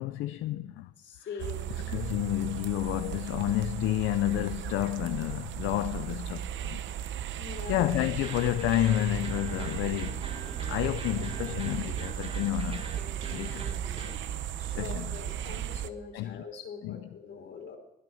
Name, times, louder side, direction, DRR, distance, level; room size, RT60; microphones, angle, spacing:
voice 1, 0.0-0.9 1.2-1.4 1.9-6.8 7.7-12.8 13.3-14.2 14.7-15.2 16.1-16.4 16.8-17.1, left 14 dB, 90° left, 0.5 m, -30 dB
voice 2, 1.0-1.9 7.4-7.9 14.6-17.8, left 6 dB, 65° left, 3.3 m, -43 dB
sound 1, 1.4-15.9, right 10 dB, 75° right, 0.7 m, -36 dB
sound 2, 8.0-14.2, right 3 dB, 30° right, 1.8 m, -44 dB
20.0 x 9.3 x 6.3 m
cardioid pair, 90°, 20 cm